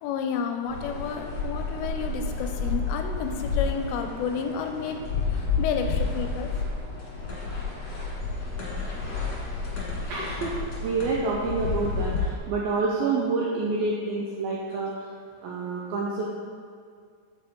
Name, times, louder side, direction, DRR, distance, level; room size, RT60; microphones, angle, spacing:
voice 1, 0.0-5.1 5.6-6.5, left 6 dB, 80° left, 5 dB, 2.7 m, -31 dB
sound 1, 0.7-12.3, left 4 dB, 50° left, 2.1 m, -30 dB
voice 2, 10.1-15.1 15.4-16.2, right 3 dB, 85° right, -3 dB, 2.1 m, -28 dB
10.0 x 7.2 x 3.7 m, 2.1 s
omnidirectional pair, 5.3 m